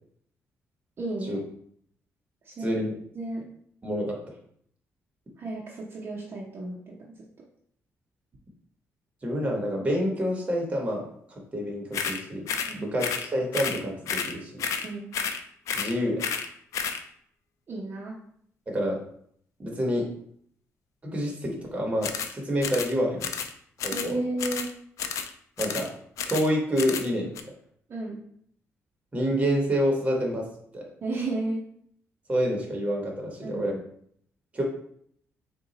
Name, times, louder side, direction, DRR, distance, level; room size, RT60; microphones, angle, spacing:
voice 1, 1.0-1.4 2.4-2.8 3.1-3.4 5.4-7.0 12.7-12.9 14.8-15.1 17.7-18.2 23.9-24.7 27.9-28.2 31.0-31.6 33.4-33.8, right 2 dB, 45° right, -4 dB, 0.8 m, -33 dB
voice 2, 2.6-2.9 3.8-4.2 9.2-11.1 11.5-12.5 12.7-14.7 15.7-16.2 18.7-19.0 19.6-20.1 21.1-23.3 23.8-24.1 25.6-25.9 26.3-27.3 29.1-30.5 30.7-30.9 32.3-33.7 34.5-34.6, equal, 25° right, -1 dB, 1.1 m, -27 dB
sound 1, 11.9-12.2 12.5-12.7 13.0-13.3 13.5-13.8 14.1-14.3 14.6-14.9 15.1-15.4 15.7-15.9 16.2-16.5 16.7-17.0 22.0-22.3 22.6-22.9 23.2-23.5 23.8-24.1 24.4-24.7 25.0-25.3 25.6-25.9 26.2-26.5 26.8-27.1 27.4-27.5, left 7 dB, 80° left, 0.4 m, -31 dB
3.8 x 2.3 x 4.0 m, 0.66 s
cardioid pair, 115°, 5 cm